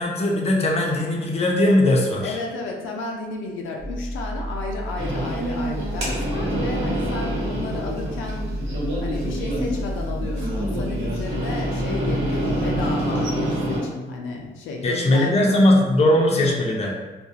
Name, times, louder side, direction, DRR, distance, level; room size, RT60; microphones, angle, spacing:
voice 1, 0.0-2.4 14.8-16.9, left 1 dB, 35° left, -1 dB, 0.5 m, -19 dB
voice 2, 2.2-15.4, left 3 dB, 85° left, 0 dB, 0.4 m, -32 dB
sound 1, 3.8-12.9, equal, 25° right, 0.5 m, -32 dB
sound 2, 5.0-13.8, right 1 dB, 85° right, 0.9 m, -27 dB
2.3 x 2.1 x 2.6 m, 1.2 s
cardioid pair, 85°, 19 cm